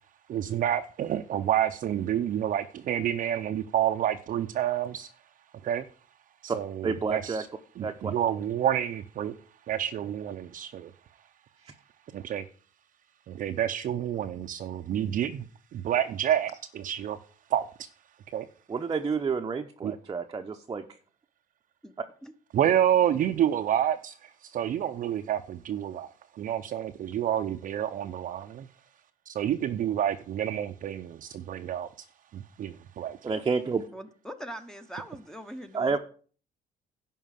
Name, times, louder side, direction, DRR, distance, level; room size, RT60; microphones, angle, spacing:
voice 1, 0.3-5.1 5.6-5.9 6.4-7.5 7.8-9.4 9.7-10.9 12.1-12.4 13.3-15.5 15.7-17.2 17.5-17.9 18.3-18.5 19.8-19.9 22.5-26.1 26.3-28.7 29.3-31.9 32.3-33.2, right 10 dB, 55° right, 0.7 m, -29 dB
voice 2, 6.8-7.4 7.8-8.1 11.6-11.7 18.7-20.9 33.2-33.9 35.7-36.0, right 5 dB, 25° right, 0.8 m, -29 dB
voice 3, 33.9-36.0, right 1 dB, 5° left, 1.0 m, -41 dB
11.0 x 4.6 x 7.5 m
cardioid pair, 110°, 17 cm